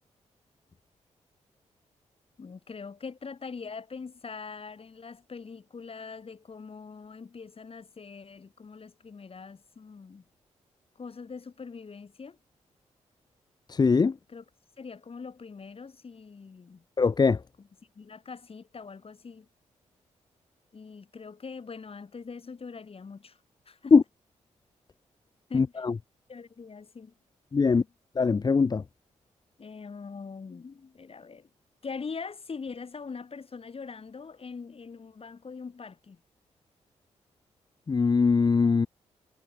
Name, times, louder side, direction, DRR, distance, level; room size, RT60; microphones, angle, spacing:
voice 1, 2.4-10.2 11.0-12.4 14.3-14.4 14.8-16.8 17.6-17.7 18.0-19.5 20.7-23.4 23.7-24.0 25.5-25.8 26.3-27.1 29.6-31.5 31.8-36.2, left 5 dB, 50° left, 7.3 m, -42 dB
voice 2, 13.7-14.1 17.0-17.4 23.9-24.0 25.5-25.9 27.5-27.8 28.2-28.8 37.9-38.9, left 4 dB, 30° left, 0.6 m, -21 dB
cardioid pair, 60°, 13 cm